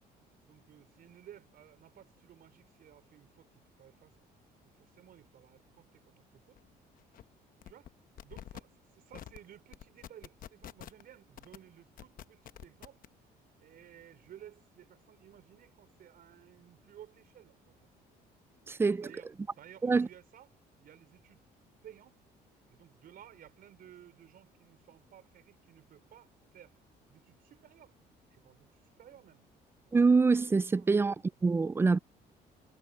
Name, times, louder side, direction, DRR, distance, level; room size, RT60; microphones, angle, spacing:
voice 1, 0.4-4.2 4.7-6.6 7.6-7.9 8.2-13.0 13.6-17.9 18.7-21.5 21.8-22.2 22.7-28.0 28.3-29.5 30.7-30.9, right 11 dB, 60° right, 4.9 m, -56 dB
sound 1, 6.6-6.7 7.0-7.2 7.6-7.9 8.2-8.6 9.1-9.4 9.7-11.0 11.4-11.6 12.0-13.1, left 11 dB, 55° left, 1.0 m, -47 dB
voice 2, 18.7-19.0 19.8-20.1 29.9-31.2 31.4-32.0, right 4 dB, 15° right, 0.3 m, -25 dB
cardioid pair, 110°, 17 cm